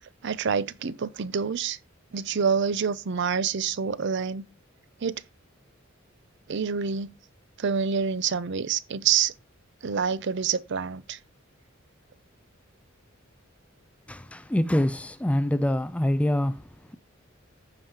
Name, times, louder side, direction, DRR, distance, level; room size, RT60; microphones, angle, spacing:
voice 1, 0.2-1.8 2.1-4.4 5.0-5.2 6.5-7.1 7.6-9.3 9.8-11.2, right 6 dB, 60° right, 0.5 m, -27 dB
voice 2, 14.1-16.6, left 1 dB, 5° left, 0.4 m, -25 dB
14.5 x 5.1 x 2.8 m
head